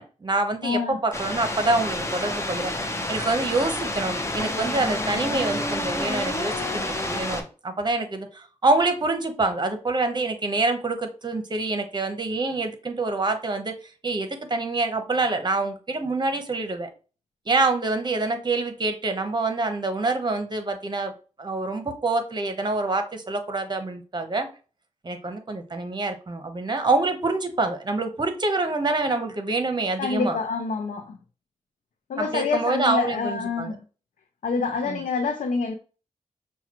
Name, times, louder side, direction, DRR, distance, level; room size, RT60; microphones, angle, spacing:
voice 1, 0.0-2.7 3.1-13.7 14.0-16.9 17.5-21.1 21.4-24.5 25.0-30.4 32.2-33.8 34.8-35.0, right 3 dB, 35° right, 0.9 m, -26 dB
voice 2, 0.6-1.0 30.0-31.2 32.1-33.8 34.4-35.7, left 4 dB, 85° left, 0.5 m, -27 dB
sound 1, 1.1-7.4, left 1 dB, 20° left, 0.8 m, -29 dB
5.7 x 2.3 x 2.9 m
cardioid pair, 60°, 13 cm